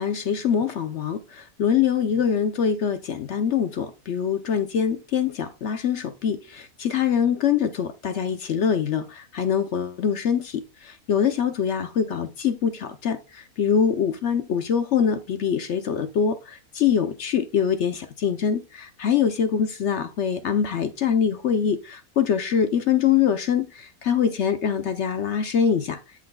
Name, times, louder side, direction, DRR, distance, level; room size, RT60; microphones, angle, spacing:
voice 1, 0.0-26.0, left 7 dB, 60° left, 0.8 m, -24 dB
13.5 x 5.9 x 2.3 m
omnidirectional pair, 1.6 m